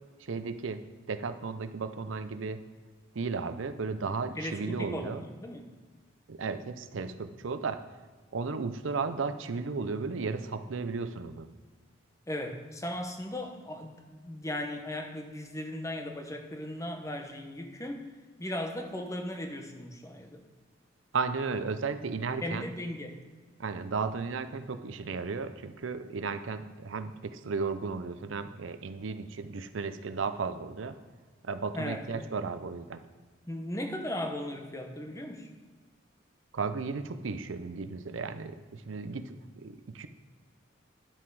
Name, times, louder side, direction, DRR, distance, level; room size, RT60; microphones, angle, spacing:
voice 1, 0.3-0.8 1.1-2.6 3.1-5.2 6.3-7.8 8.3-11.5 21.1-22.6 23.6-31.0 31.4-33.0 36.5-40.1, right 4 dB, 75° right, 10 dB, 0.6 m, -34 dB
voice 2, 4.4-5.7 12.3-18.1 18.4-20.4 22.4-23.2 31.7-32.5 33.5-35.5, left 1 dB, 15° left, 4 dB, 0.8 m, -37 dB
10.5 x 5.9 x 4.7 m, 1.4 s
head